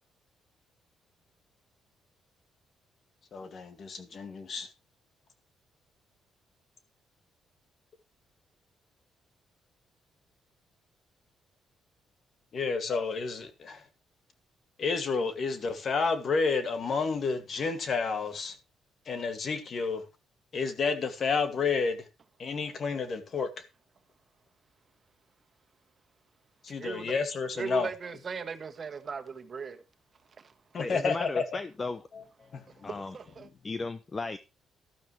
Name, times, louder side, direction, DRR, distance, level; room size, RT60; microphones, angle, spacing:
voice 1, 3.3-4.7 12.5-13.8 14.8-18.6 19.1-20.0 20.5-22.0 22.4-23.5 26.6-27.9 30.7-31.4 32.5-32.9, left 4 dB, 50° left, 2.2 m, -30 dB
voice 2, 26.8-27.1 27.5-29.8 30.4-30.5 32.7-32.9 33.1-33.5, right 5 dB, 45° right, 1.5 m, -38 dB
voice 3, 30.8-32.0 32.8-33.2 33.6-34.4, left 3 dB, 30° left, 0.8 m, -35 dB
12.5 x 12.0 x 3.3 m
cardioid pair, 90°, 0 cm